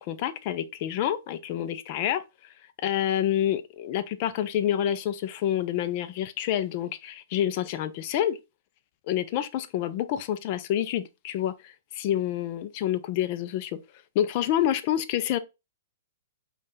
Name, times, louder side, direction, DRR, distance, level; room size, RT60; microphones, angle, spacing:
voice 1, 0.0-2.5 2.8-8.4 9.1-13.8 14.1-15.4, left 11 dB, 45° left, 0.5 m, -28 dB
5.4 x 2.4 x 3.9 m
hypercardioid pair, 125°, 0 cm